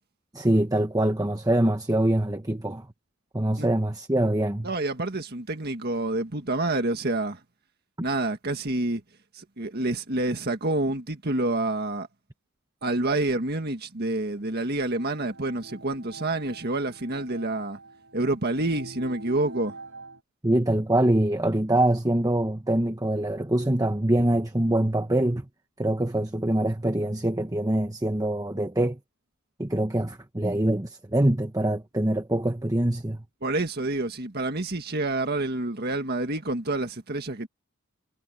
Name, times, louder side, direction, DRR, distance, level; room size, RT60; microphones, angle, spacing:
voice 1, 0.3-2.9 3.3-4.7 20.4-25.4 25.8-29.0 29.6-33.2, right 1 dB, 15° right, 1.1 m, -24 dB
voice 2, 4.6-7.4 8.0-9.0 9.3-12.1 12.8-17.8 18.1-19.7 33.4-37.5, right 2 dB, 45° right, 1.7 m, -28 dB
sound 1, 14.9-20.2, right 2 dB, 65° right, 5.4 m, -45 dB
head